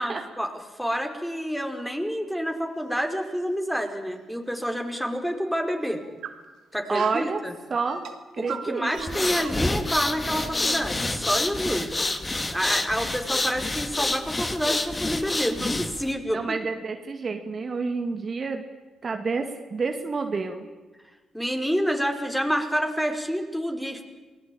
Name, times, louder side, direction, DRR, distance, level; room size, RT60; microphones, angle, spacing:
voice 1, 0.0-6.0 6.7-7.5 8.4-12.0 12.5-16.4 21.3-24.0, equal, 5° left, 4 dB, 5.1 m, -28 dB
sound 1, 2.5-4.6 5.1-5.2 5.8-7.3 7.9-12.2, right 9 dB, 70° right, 2.0 m, -43 dB
voice 2, 6.9-7.4 7.7-8.0 8.3-9.3 12.9-13.1 16.3-18.6 19.0-20.7, right 4 dB, 45° right, 5 dB, 2.3 m, -29 dB
sound 2, 9.0-16.1, left 2 dB, 25° left, 2.7 m, -28 dB
28.0 x 19.0 x 8.7 m, 1.3 s
hypercardioid pair, 40°, 0 cm